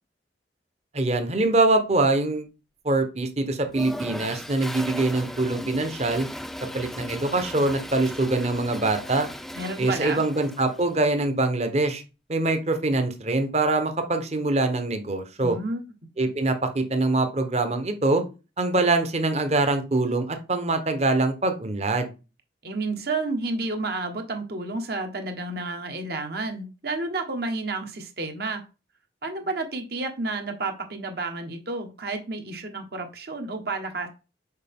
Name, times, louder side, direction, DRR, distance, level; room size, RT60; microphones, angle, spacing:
voice 1, 0.9-2.5 2.8-6.3 6.7-9.3 9.8-12.0 12.3-15.6 16.2-18.2 18.6-22.1, right 2 dB, 35° right, 7 dB, 1.0 m, -24 dB
Toilet flush, 3.7-10.9, left 1 dB, ahead, 0.3 m, -37 dB
voice 2, 9.5-10.2 15.4-15.8 22.6-28.6 29.2-34.1, right 3 dB, 60° right, 4 dB, 1.4 m, -31 dB
6.5 x 4.7 x 3.6 m, 0.30 s
head